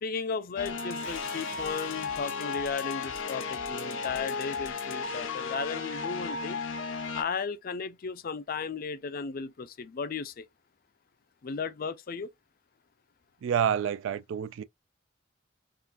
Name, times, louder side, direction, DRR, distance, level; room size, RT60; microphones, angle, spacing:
voice 1, 0.0-6.6 7.1-10.5 11.4-12.3, left 5 dB, 50° left, 0.4 m, -35 dB
sound 1, 0.6-7.2, left 5 dB, 85° left, 0.8 m, -34 dB
voice 2, 13.4-14.6, right 8 dB, 75° right, 0.3 m, -28 dB
3.6 x 2.5 x 2.4 m
head